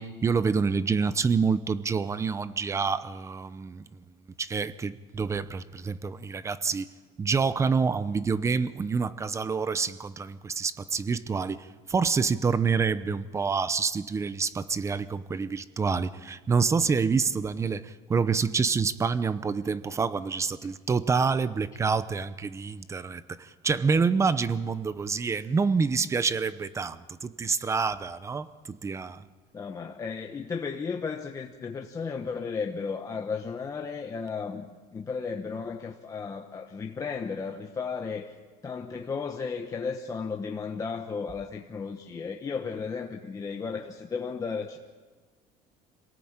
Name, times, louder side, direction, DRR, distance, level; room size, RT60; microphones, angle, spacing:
voice 1, 0.0-3.8 4.4-6.9 7.2-29.2, right 5 dB, 20° right, 15 dB, 0.8 m, -27 dB
voice 2, 29.5-38.4 38.6-44.8, left 5 dB, 20° left, 3 dB, 1.0 m, -34 dB
26.5 x 18.5 x 8.9 m, 1.4 s
cardioid pair, 155°, 15 cm